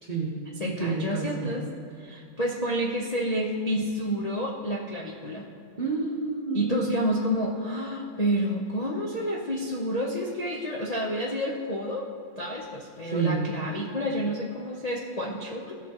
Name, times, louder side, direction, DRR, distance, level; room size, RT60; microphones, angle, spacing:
voice 1, 0.0-0.4 0.6-1.6 5.8-7.0 13.1-13.5, right 4 dB, 35° right, -2 dB, 0.8 m, -29 dB
voice 2, 0.6-1.6 2.0-5.4 6.5-15.8, equal, 60° left, -3 dB, 0.4 m, -29 dB
16.0 x 7.1 x 2.9 m, 2.4 s
omnidirectional pair, 2.1 m